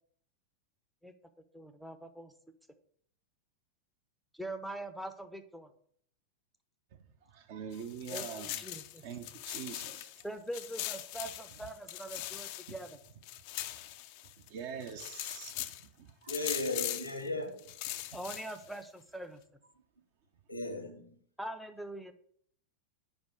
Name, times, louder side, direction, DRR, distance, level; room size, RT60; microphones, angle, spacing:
voice 1, 1.5-2.3 4.3-5.7 8.1-9.0 10.2-13.0 18.1-19.4 21.4-22.1, right 1 dB, ahead, 0.6 m, -43 dB
voice 2, 7.3-8.6 9.0-10.2 14.5-16.3, right 7 dB, 50° right, 0.8 m, -44 dB
sound 1, 7.7-10.2 10.5-14.5 14.8-15.8 16.3-17.2 17.6-18.8, left 15 dB, 45° left, 0.4 m, -41 dB
voice 3, 16.3-17.7 20.5-21.2, left 2 dB, 90° left, 1.0 m, -36 dB
5.2 x 5.1 x 6.1 m
figure-of-eight pair, 90°, 0 cm